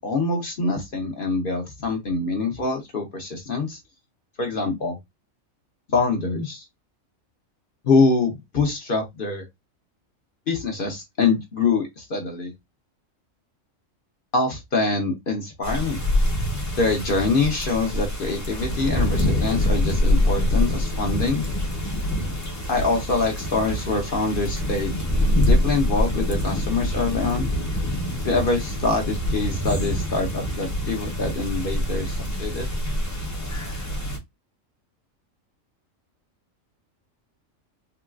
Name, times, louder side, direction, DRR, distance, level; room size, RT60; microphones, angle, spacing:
voice 1, 0.0-3.8 4.4-5.0 5.9-6.6 7.8-9.5 10.5-12.5 14.3-16.0 16.8-21.4 22.7-25.0 25.3-27.5 28.2-32.7, left 3 dB, 50° left, 0.8 m, -24 dB
sound 1, 15.6-34.2, left 1 dB, 20° left, 0.5 m, -25 dB
3.8 x 2.3 x 2.3 m
omnidirectional pair, 1.4 m